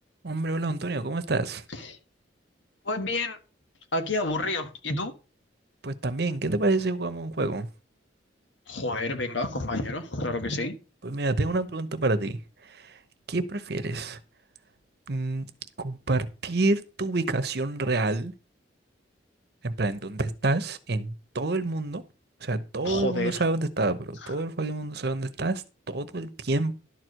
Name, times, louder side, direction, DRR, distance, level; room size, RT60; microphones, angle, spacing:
voice 1, 0.2-1.6 5.8-7.7 11.0-13.0 13.3-14.2 15.1-15.5 15.8-18.3 19.6-22.0 22.4-26.7, right 2 dB, 55° right, 0.9 m, -28 dB
voice 2, 2.8-3.4 3.9-5.1 8.7-10.7 22.8-23.4 24.2-24.3, left 2 dB, 75° left, 1.5 m, -29 dB
11.5 x 4.6 x 6.4 m
head